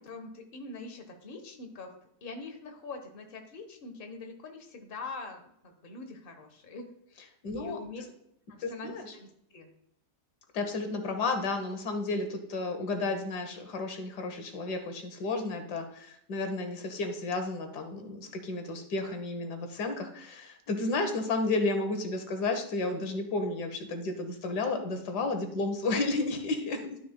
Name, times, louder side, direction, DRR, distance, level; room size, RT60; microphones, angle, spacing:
voice 1, 0.0-1.9 2.2-6.9 7.5-8.0 8.5-9.7, left 3 dB, 40° left, 5 dB, 1.2 m, -43 dB
voice 2, 7.4-7.8 8.6-9.1 10.5-27.0, left 3 dB, 90° left, 6 dB, 1.7 m, -32 dB
11.5 x 6.7 x 2.2 m, 0.73 s
omnidirectional pair, 1.7 m